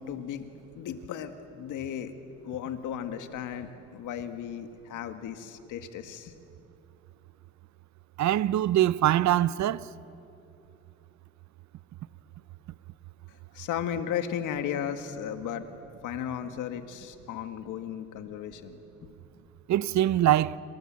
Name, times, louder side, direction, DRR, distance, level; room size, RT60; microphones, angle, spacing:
voice 1, 0.0-2.1 2.4-6.3 13.5-15.7 16.0-18.8, left 9 dB, 90° left, 1.9 m, -35 dB
voice 2, 8.2-9.8 19.7-20.6, right 13 dB, 65° right, 0.7 m, -23 dB
28.5 x 26.5 x 7.6 m
cardioid pair, 90°, 30 cm